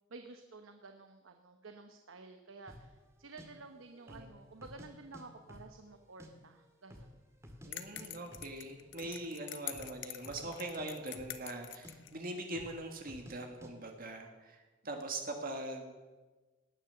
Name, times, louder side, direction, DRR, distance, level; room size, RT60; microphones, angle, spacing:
voice 1, 0.1-7.2, right 3 dB, 90° right, 6 dB, 1.0 m, -52 dB
sound 1, 2.7-2.9 3.4-3.5 4.0-4.3 4.6-5.2 5.5-6.3 6.6-6.7 6.9-7.7 8.0-8.1 8.3-8.5 8.8-9.1 9.6-10.0 10.2-10.5 10.8-11.6 11.8-12.0 12.5-12.8 13.1-13.4 13.6-13.7, equal, 15° right, 2.0 m, -52 dB
voice 2, 7.6-16.0, right 2 dB, 45° right, 3 dB, 1.7 m, -42 dB
sound 2, 7.7-12.1, left 12 dB, 65° left, 1.0 m, -46 dB
18.5 x 10.5 x 6.9 m, 1.3 s
head